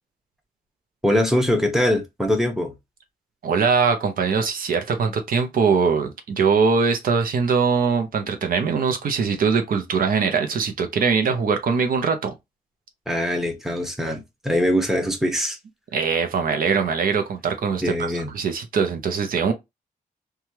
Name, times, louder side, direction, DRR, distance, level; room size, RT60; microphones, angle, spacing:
voice 1, 1.0-2.7 13.1-15.6 17.8-18.3, equal, ahead, 0.9 m, -22 dB
voice 2, 3.4-12.3 15.9-19.5, right 5 dB, 65° right, 0.6 m, -22 dB
3.1 x 2.3 x 2.8 m
wide cardioid pair, 130°, 16 cm